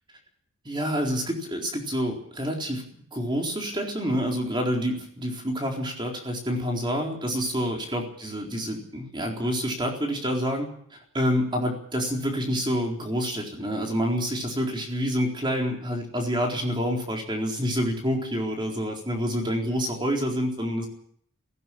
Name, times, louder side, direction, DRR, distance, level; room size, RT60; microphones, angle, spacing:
voice 1, 0.6-2.8 3.1-10.7 11.1-20.9, equal, 20° right, 1 dB, 4.1 m, -27 dB
18.0 x 17.0 x 8.6 m, 0.64 s
head